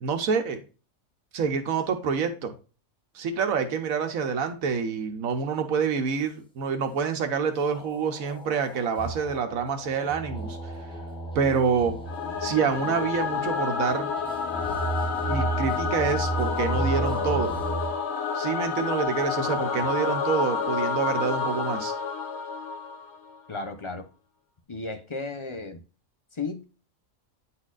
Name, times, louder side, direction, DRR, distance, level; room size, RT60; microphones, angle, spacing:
voice 1, 0.0-0.6 1.3-2.5 3.1-10.7 11.3-12.0 12.4-14.1 15.3-17.5 18.3-21.9, right 6 dB, 85° right, 6 dB, 1.3 m, -27 dB
sound 1, 7.6-19.0, left 4 dB, 85° left, 2.1 m, -45 dB
sound 2, 9.0-18.0, right 3 dB, 5° left, 0.8 m, -33 dB
Singing / Musical instrument, 12.1-23.4, left 5 dB, 55° left, 1.1 m, -29 dB
voice 2, 23.5-24.0 24.7-25.8 26.3-26.6, left 3 dB, 30° left, 7 dB, 0.6 m, -34 dB
9.6 x 4.2 x 2.4 m, 0.34 s
omnidirectional pair, 1.4 m